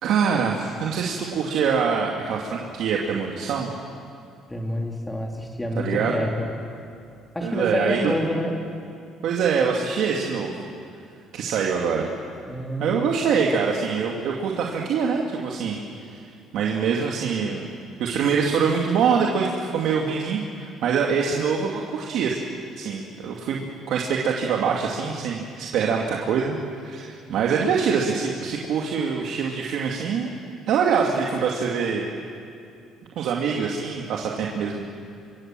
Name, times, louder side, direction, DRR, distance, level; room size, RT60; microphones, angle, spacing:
voice 1, 0.0-3.7 5.8-6.3 7.4-8.1 9.2-10.6 11.3-12.1 12.8-15.8 16.1-16.2 16.5-17.7 18.0-22.4 22.8-30.3 30.7-32.1 33.2-34.9, right 6 dB, 65° right, -1 dB, 2.3 m, -24 dB
voice 2, 4.5-6.5 7.3-8.6 12.5-13.1, left 1 dB, 10° left, 1 dB, 3.0 m, -28 dB
26.5 x 24.0 x 7.7 m, 2.5 s
cardioid pair, 135°, 0 cm